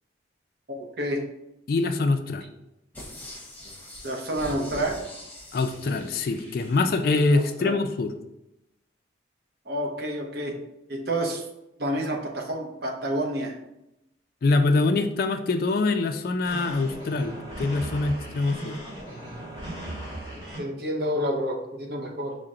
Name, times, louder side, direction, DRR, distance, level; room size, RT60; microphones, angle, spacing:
voice 1, 0.7-1.2 4.0-5.0 7.3-7.7 9.7-10.6 10.9-11.4 11.8-13.6 20.6-22.4, right 1 dB, 55° right, 1 dB, 0.7 m, -29 dB
voice 2, 1.7-2.4 5.5-8.1 14.4-18.8, left 3 dB, 50° left, 8 dB, 0.3 m, -24 dB
sound 1, 2.9-7.4 7.8-7.9, left 1 dB, 10° left, 0.8 m, -43 dB
sound 2, 16.4-20.6, right 1 dB, 25° right, 1.3 m, -37 dB
5.7 x 2.1 x 3.7 m, 0.89 s
head